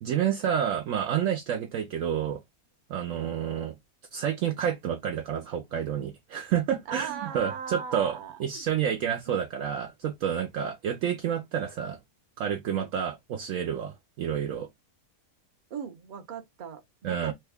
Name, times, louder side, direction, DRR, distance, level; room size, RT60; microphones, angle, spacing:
voice 1, 0.0-2.4 2.9-3.7 4.1-12.0 12.4-14.7 17.0-17.3, right 9 dB, 70° right, 0.9 m, -29 dB
voice 2, 6.9-8.6 9.3-9.4 12.7-12.9 15.7-17.3, right 7 dB, 50° right, 0.6 m, -39 dB
3.3 x 2.3 x 3.4 m
omnidirectional pair, 1.5 m